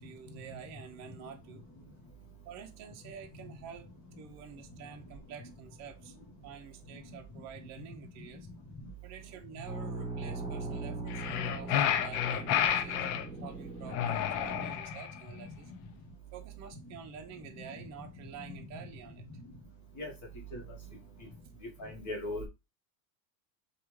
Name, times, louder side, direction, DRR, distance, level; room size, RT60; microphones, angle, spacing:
voice 1, 0.0-1.6 2.4-3.9 4.2-6.2 6.4-8.5 9.0-13.0 13.4-15.7 16.3-19.2 20.9-21.0, right 7 dB, 35° right, 0.6 m, -48 dB
sound 1, 9.6-14.7, right 3 dB, 10° right, 1.4 m, -40 dB
sound 2, 11.1-13.3 13.9-15.2, left 10 dB, 70° left, 0.6 m, -30 dB
voice 2, 14.5-14.8 18.4-18.5 20.0-20.1 20.5-20.6 21.8-22.4, left 1 dB, 35° left, 1.3 m, -39 dB
3.4 x 2.4 x 3.0 m
supercardioid pair, 110°, 49 cm